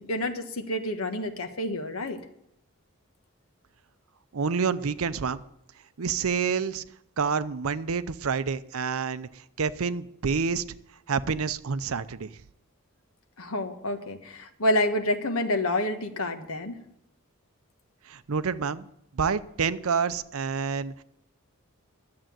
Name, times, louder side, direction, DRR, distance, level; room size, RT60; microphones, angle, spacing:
voice 1, 0.0-2.2 13.4-16.8, left 1 dB, 75° left, 7 dB, 1.4 m, -28 dB
voice 2, 4.3-5.4 6.0-6.8 7.2-10.6 11.1-12.3 18.1-18.9 19.1-21.0, right 5 dB, 75° right, 15 dB, 0.6 m, -28 dB
11.5 x 7.6 x 9.2 m, 0.78 s
head